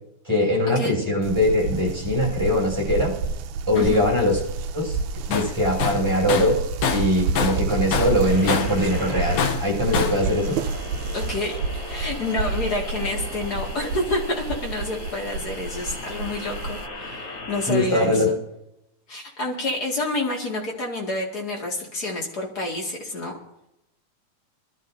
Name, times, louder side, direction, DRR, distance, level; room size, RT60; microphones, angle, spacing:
voice 1, 0.2-3.1 3.7-4.4 4.7-5.0 5.3-6.6 6.9-10.6 17.7-18.3, left 1 dB, 10° right, -4 dB, 6.4 m, -22 dB
sound 1, 1.2-16.9, right 4 dB, 80° right, 2.0 m, -30 dB
voice 2, 3.7-4.0 11.1-18.4 19.1-23.3, left 2 dB, 35° left, -1 dB, 2.3 m, -28 dB
Tools, 5.3-5.5 5.8-7.7 7.9-8.8 9.4-10.2, left 6 dB, 70° left, 1.4 m, -25 dB
sound 2, 8.3-17.9, left 2 dB, 50° left, 3.2 m, -37 dB
25.5 x 12.0 x 2.7 m, 0.84 s
omnidirectional pair, 3.4 m